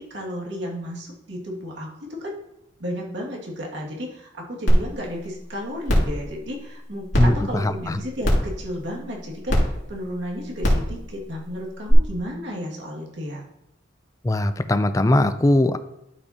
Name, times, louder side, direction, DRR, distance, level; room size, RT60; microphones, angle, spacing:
voice 1, 0.0-2.4 2.8-13.4, equal, 70° right, -2 dB, 2.2 m, -33 dB
sound 1, 4.7-4.8 5.2-5.3 5.9-6.1 7.1-7.2 8.2-8.5 9.5-9.6 10.6-10.8 11.9-12.0, equal, 85° left, 2.5 m, -19 dB
voice 2, 7.2-8.0 14.2-15.8, left 1 dB, 15° left, 10 dB, 0.4 m, -20 dB
12.0 x 5.6 x 2.9 m, 0.82 s
head